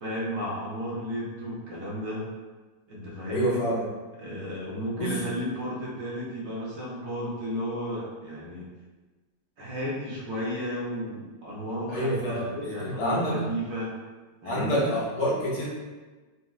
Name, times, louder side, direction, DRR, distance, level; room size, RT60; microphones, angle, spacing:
voice 1, 0.0-2.3 2.9-3.6 4.2-8.7 9.6-13.9 14.4-14.9, equal, 70° right, -5 dB, 1.2 m, -33 dB
voice 2, 3.3-3.9 5.0-5.1 11.9-13.3 14.4-15.7, equal, 70° left, -6 dB, 1.3 m, -27 dB
3.9 x 2.0 x 2.3 m, 1.3 s
omnidirectional pair, 1.8 m